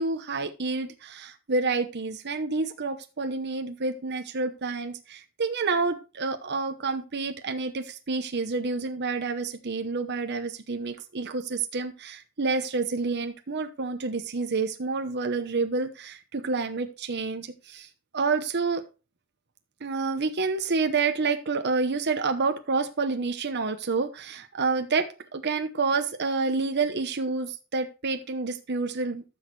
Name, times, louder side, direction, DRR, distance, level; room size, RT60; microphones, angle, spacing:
voice 1, 0.0-17.9 18.1-18.8 19.8-29.2, right 4 dB, 50° right, 7 dB, 0.9 m, -28 dB
14.0 x 6.2 x 3.2 m, 0.32 s
head